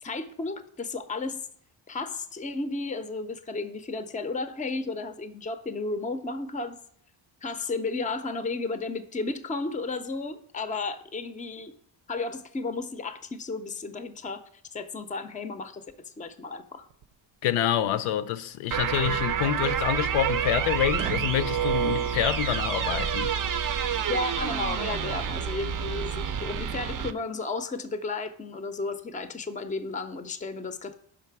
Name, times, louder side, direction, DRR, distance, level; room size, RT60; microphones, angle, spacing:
voice 1, 0.0-1.4 1.9-6.8 7.4-11.7 12.1-14.4 14.7-16.9 24.1-30.9, left 3 dB, 15° left, 0.5 m, -33 dB
sound 1, 16.9-17.1 19.0-19.3 20.9-21.4, right 9 dB, 90° right, 0.7 m, -35 dB
voice 2, 17.4-23.3, left 10 dB, 85° left, 0.6 m, -27 dB
sound 2, 18.7-27.1, right 8 dB, 45° right, 0.5 m, -28 dB
5.8 x 5.2 x 4.6 m
cardioid pair, 100°, 48 cm